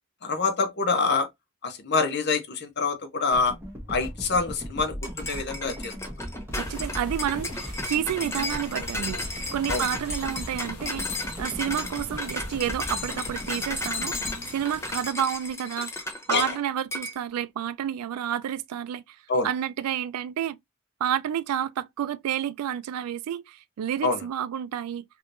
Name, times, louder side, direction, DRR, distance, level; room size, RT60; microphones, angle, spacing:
voice 1, 0.2-1.3 1.6-3.6 3.9-5.9 9.7-9.8 16.3-16.5 19.3-19.5 24.0-24.2, left 4 dB, 50° left, 0.7 m, -26 dB
sound 1, 3.3-15.5, equal, 10° right, 1.1 m, -38 dB
sound 2, 5.0-16.6 16.9-17.2, left 2 dB, 10° left, 0.5 m, -34 dB
sound 3, 6.5-15.0, left 2 dB, 90° left, 1.0 m, -45 dB
voice 2, 6.5-19.0 19.4-20.6 21.0-25.0, right 10 dB, 90° right, 0.3 m, -30 dB
3.4 x 2.9 x 2.5 m
head